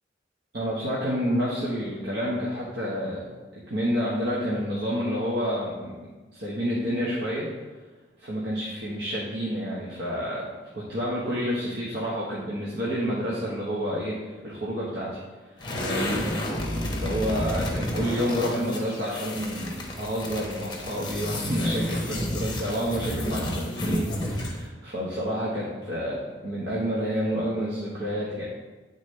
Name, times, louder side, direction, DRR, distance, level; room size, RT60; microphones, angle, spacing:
voice 1, 0.5-3.2 3.7-5.9 6.3-7.5 8.2-15.2 15.7-16.3 16.6-28.4, equal, 65° right, -7 dB, 1.2 m, -29 dB
sound 1, 15.6-24.7, left 1 dB, 25° left, 0.9 m, -31 dB
9.3 x 4.0 x 3.2 m, 1.3 s
head